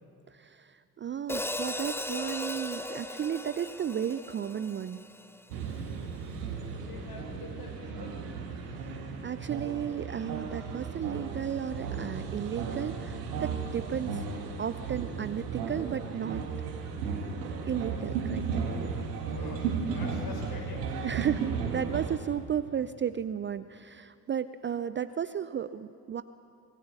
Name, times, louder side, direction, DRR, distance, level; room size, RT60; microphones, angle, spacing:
voice 1, 0.3-5.1 8.6-14.2 14.6-16.4 17.7-19.0 21.0-26.2, right 9 dB, 25° right, 14 dB, 0.5 m, -34 dB
Hi-hat, 1.3-5.6, left 1 dB, 5° left, 0.9 m, -37 dB
sound 1, 5.5-22.2, right 5 dB, 70° right, 1.9 m, -35 dB
voice 2, 6.7-8.2 19.3-21.1, left 3 dB, 50° left, 0 dB, 6.4 m, -45 dB
24.5 x 19.0 x 7.1 m, 2.5 s
figure-of-eight pair, 45°, 48 cm